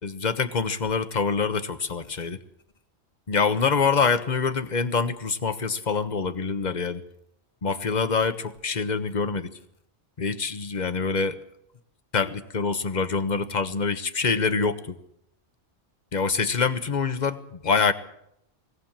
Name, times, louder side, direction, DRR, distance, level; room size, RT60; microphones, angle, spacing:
voice 1, 0.0-2.4 3.3-7.0 7.6-9.5 10.2-11.4 12.1-15.0 16.1-17.9, left 5 dB, 40° left, 10 dB, 1.3 m, -25 dB
21.5 x 17.5 x 7.4 m, 0.76 s
omnidirectional pair, 1.2 m